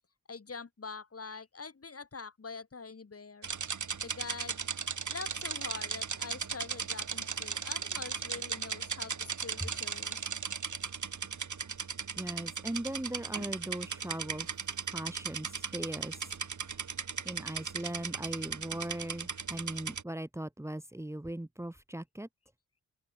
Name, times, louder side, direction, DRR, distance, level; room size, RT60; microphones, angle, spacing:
voice 1, 0.3-3.5 4.0-4.6 5.1-10.2, left 4 dB, 45° left, 7.2 m, -44 dB
sound 1, 3.4-20.0, right 6 dB, 60° right, 7.1 m, -37 dB
voice 2, 12.1-14.5 14.9-16.3 17.2-22.3, right 1 dB, 10° right, 2.8 m, -39 dB
open air
wide cardioid pair, 110°, 34 cm